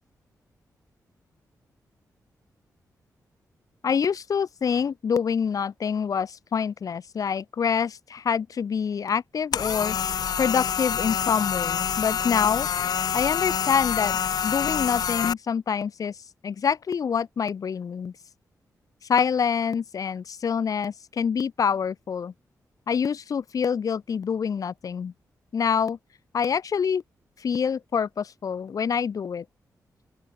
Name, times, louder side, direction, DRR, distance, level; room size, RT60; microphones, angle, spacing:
voice 1, 3.8-10.0 10.4-12.7 13.1-16.2 16.4-18.1 19.1-22.3 22.9-25.1 25.5-26.0 26.3-27.0 27.4-29.4, left 6 dB, 60° left, 1.5 m, -26 dB
sound 1, 9.5-15.3, left 8 dB, 80° left, 4.4 m, -27 dB
open air
cardioid pair, 80°, 7 cm